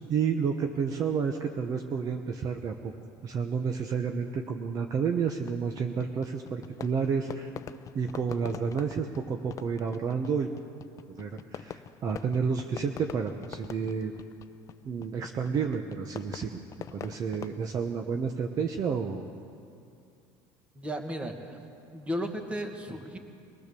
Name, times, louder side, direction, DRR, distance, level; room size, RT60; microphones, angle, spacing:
voice 1, 0.1-2.9 3.2-7.5 7.9-10.5 11.1-14.1 14.8-16.6 16.9-19.2, right 6 dB, 35° right, 5 dB, 1.1 m, -30 dB
Fireworks, 5.3-17.6, left 9 dB, 30° left, 0.6 m, -45 dB
voice 2, 20.8-21.6 21.9-23.2, equal, 10° right, 4 dB, 2.0 m, -34 dB
24.5 x 18.5 x 7.0 m, 2.5 s
cardioid pair, 145°, 10 cm